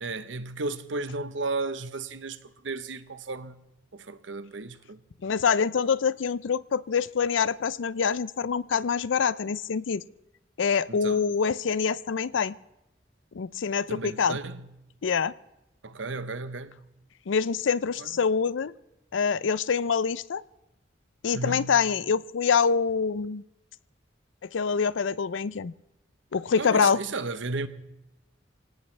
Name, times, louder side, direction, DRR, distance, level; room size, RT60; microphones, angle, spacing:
voice 1, 0.0-2.4 2.6-3.6 3.9-5.0 10.9-11.2 13.9-14.6 15.8-16.8 18.0-18.1 21.3-21.8 26.6-27.7, right 3 dB, 80° right, 0.9 m, -34 dB
voice 2, 5.2-10.0 10.6-12.5 13.3-14.4 15.0-15.3 17.3-18.7 19.1-20.4 21.2-23.4 24.5-25.7 26.3-27.0, left 6 dB, 80° left, 0.5 m, -25 dB
24.5 x 17.5 x 3.3 m
head